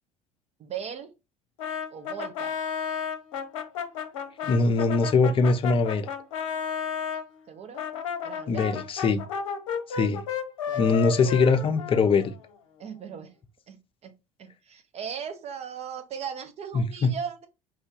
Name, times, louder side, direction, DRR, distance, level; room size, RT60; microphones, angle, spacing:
voice 1, 0.6-1.1 1.9-2.5 7.5-7.8 8.2-8.7 10.7-11.4 12.8-13.3 13.7-14.1 14.4-17.5, right 7 dB, 35° right, 0.9 m, -38 dB
Brass instrument, 1.6-7.2 7.7-12.5, left 7 dB, 65° left, 0.8 m, -33 dB
voice 2, 4.4-6.1 8.5-9.2 9.9-10.2 10.8-12.3 16.7-17.1, left 4 dB, 30° left, 0.7 m, -22 dB
4.8 x 2.6 x 3.8 m
figure-of-eight pair, 65°, 18 cm